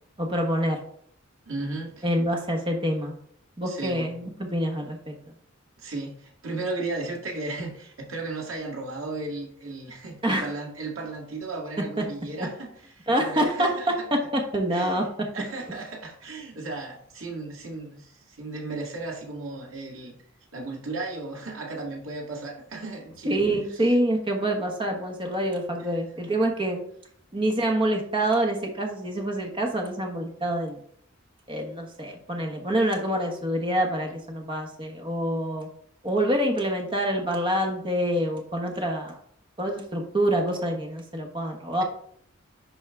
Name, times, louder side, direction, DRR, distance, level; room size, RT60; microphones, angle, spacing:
voice 1, 0.2-0.8 2.0-3.2 3.6-5.2 10.2-10.5 12.0-12.1 13.1-13.7 14.1-15.3 23.3-26.8 27.3-30.8 31.5-35.7 36.0-39.2 39.6-41.8, right 1 dB, 25° right, 2 dB, 1.2 m, -26 dB
voice 2, 1.5-2.1 3.7-4.1 5.8-12.7 13.0-13.9 14.7-15.1 15.3-20.2 20.5-23.4, right 2 dB, 85° right, 1 dB, 1.8 m, -35 dB
11.0 x 4.0 x 3.6 m, 0.64 s
head